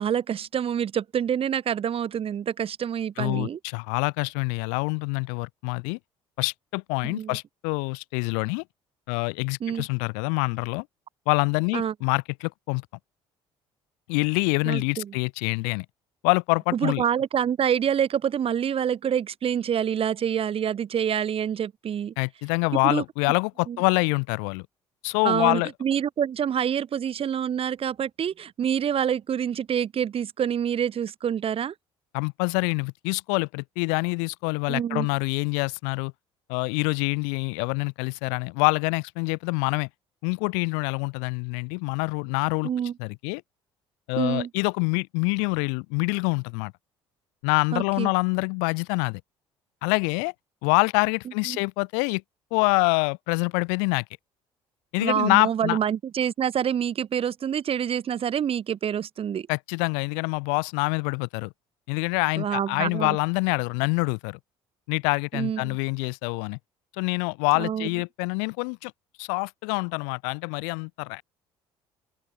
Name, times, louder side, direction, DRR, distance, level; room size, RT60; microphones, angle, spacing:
voice 1, 0.0-3.6 7.0-7.4 9.6-9.9 11.7-11.9 14.6-15.1 16.7-22.1 22.8-23.0 23.7-23.8 25.2-31.7 34.7-35.1 42.6-42.9 44.2-44.5 47.7-48.1 51.5-51.6 55.0-59.5 62.4-63.2 65.3-65.8 67.6-67.9, right 8 dB, 50° right, 3.0 m, -27 dB
voice 2, 3.2-6.0 6.4-8.6 9.1-10.8 11.3-12.8 14.1-15.8 16.2-17.0 22.2-24.7 25.0-25.7 32.1-36.1 36.5-39.9 40.2-42.7 43.0-43.4 44.1-46.7 47.4-49.2 49.8-50.3 50.6-52.2 52.5-54.0 54.9-55.8 59.5-61.5 61.9-64.4 64.9-66.6 67.0-68.9 69.2-71.2, left 40 dB or more, 80° left, 1.2 m, -26 dB
open air
hypercardioid pair, 65°, 12 cm